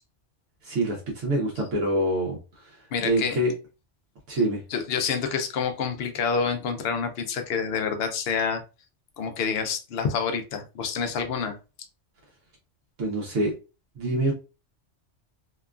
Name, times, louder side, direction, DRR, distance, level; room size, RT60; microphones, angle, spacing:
voice 1, 0.6-3.5 4.3-4.6 13.0-13.5 14.0-14.3, right 1 dB, 80° right, -2 dB, 1.1 m, -26 dB
voice 2, 2.9-3.4 4.7-8.6 9.2-11.6, left 6 dB, 65° left, 6 dB, 0.7 m, -27 dB
2.9 x 2.3 x 2.3 m, 0.31 s
omnidirectional pair, 1.2 m